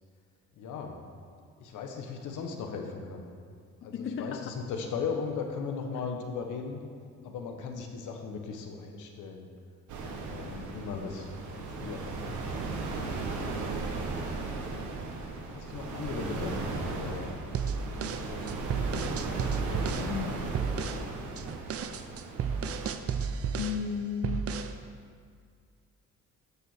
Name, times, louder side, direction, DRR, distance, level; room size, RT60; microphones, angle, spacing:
voice 1, 0.6-1.0 1.6-3.3 3.8-6.8 7.2-9.5 10.3-13.1 15.5-17.3 17.9-19.0, left 5 dB, 80° left, 3 dB, 1.3 m, -38 dB
voice 2, 3.9-4.5 14.1-14.3 20.0-20.5 23.6-24.5, left 7 dB, 45° left, 6 dB, 0.6 m, -34 dB
sound 1, 9.9-22.9, right 3 dB, 75° right, 1.6 m, -36 dB
sound 2, 17.5-20.1 20.5-21.0 21.4-23.8 24.2-24.8, right 6 dB, 50° right, 0.6 m, -33 dB
12.5 x 4.2 x 6.5 m, 2.1 s
cardioid pair, 90°, 30 cm